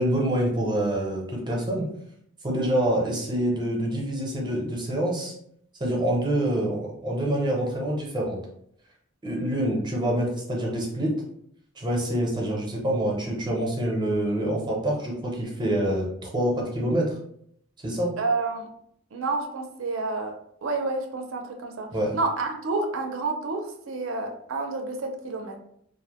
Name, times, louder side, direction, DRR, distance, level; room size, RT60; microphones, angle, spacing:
voice 1, 0.0-1.8 2.4-5.3 5.8-8.4 9.2-11.1 11.8-17.1 17.8-18.1 21.9-22.1, right 1 dB, 20° right, -2 dB, 0.6 m, -26 dB
voice 2, 18.2-18.7 19.1-20.3 20.6-25.6, right 3 dB, 70° right, 4 dB, 0.4 m, -29 dB
2.4 x 2.0 x 2.9 m, 0.69 s
head